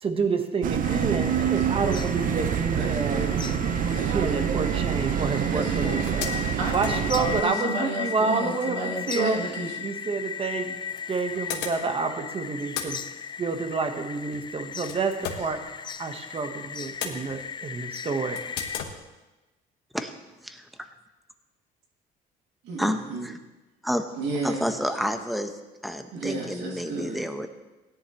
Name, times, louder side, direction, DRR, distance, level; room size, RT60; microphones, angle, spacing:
voice 1, 0.0-3.2 3.8-9.4 9.8-10.8 11.1-13.0 13.4-15.6 16.0-18.4, right 4 dB, 35° right, 6 dB, 1.4 m, -29 dB
sound 1, 0.6-7.4, right 9 dB, 55° right, 0.6 m, -26 dB
sound 2, 0.8-18.8, left 7 dB, 25° left, 0.4 m, -37 dB
voice 2, 1.3-2.3 2.8-4.7 5.5-9.8 22.6-23.3 24.2-24.7 26.1-27.3, right 2 dB, 90° right, -1 dB, 2.7 m, -33 dB
sound 3, 6.0-7.9 9.9-10.0 10.9-12.2 12.5-16.2 16.6-17.7 18.3-19.0, left 7 dB, 85° left, 1.5 m, -38 dB
voice 3, 22.8-23.4 23.8-24.0 24.4-25.6 25.8-27.5, equal, ahead, 7 dB, 1.0 m, -29 dB
17.0 x 11.0 x 3.2 m, 1.1 s
cardioid pair, 110°, 17 cm